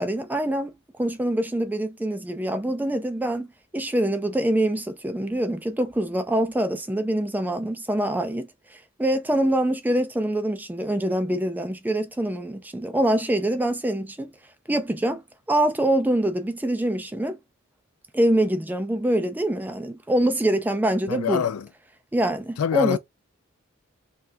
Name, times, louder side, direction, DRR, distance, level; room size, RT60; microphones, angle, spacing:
voice 1, 0.0-14.3 14.7-15.2 15.5-17.4 18.1-21.4 22.1-23.0, right 1 dB, 10° right, 0.3 m, -25 dB
voice 2, 21.1-21.7 22.6-23.0, left 8 dB, 80° left, 0.4 m, -24 dB
3.3 x 2.3 x 2.6 m
head